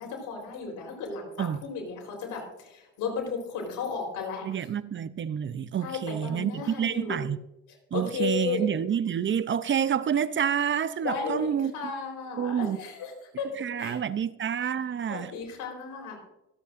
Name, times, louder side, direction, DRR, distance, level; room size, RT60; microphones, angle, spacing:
voice 1, 0.0-4.5 5.8-7.2 7.9-8.7 11.0-13.1 13.4-13.5 13.7-14.0 15.1-16.2, left 5 dB, 90° left, 4.0 m, -34 dB
voice 2, 4.4-7.4 7.9-11.7 12.4-12.8 13.4-15.3, right 8 dB, 40° right, 0.5 m, -28 dB
25.0 x 8.3 x 2.5 m
cardioid pair, 90°, 30 cm